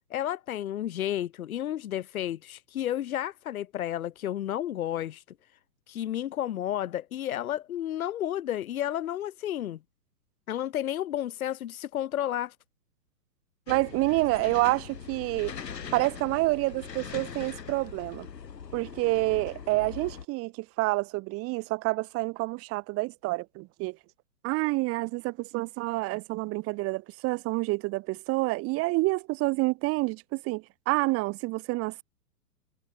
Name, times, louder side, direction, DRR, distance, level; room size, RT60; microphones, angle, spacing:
voice 1, 0.1-5.2 5.9-9.8 10.5-12.5, left 11 dB, 55° left, 7.9 m, -31 dB
sound 1, 13.7-20.3, left 7 dB, 75° left, 6.7 m, -41 dB
voice 2, 13.7-15.5 15.9-18.3 18.7-24.0 24.4-32.0, right 23 dB, 30° right, 2.3 m, -28 dB
hypercardioid pair, 125°, 49 cm